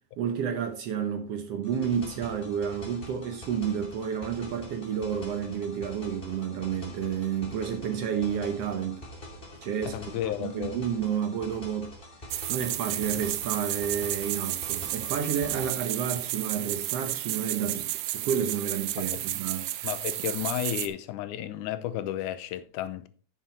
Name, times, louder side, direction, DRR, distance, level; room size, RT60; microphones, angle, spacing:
voice 1, 0.2-9.0 9.6-10.0 10.4-11.9 12.5-19.6, right 8 dB, 65° right, 1.7 m, -30 dB
sound 1, 1.6-15.7, left 1 dB, 20° left, 2.6 m, -45 dB
voice 2, 9.9-10.8 19.0-19.2 19.8-23.1, left 11 dB, 80° left, 2.2 m, -33 dB
sound 2, 12.3-20.9, right 15 dB, 85° right, 2.2 m, -32 dB
9.0 x 7.3 x 4.1 m
omnidirectional pair, 3.5 m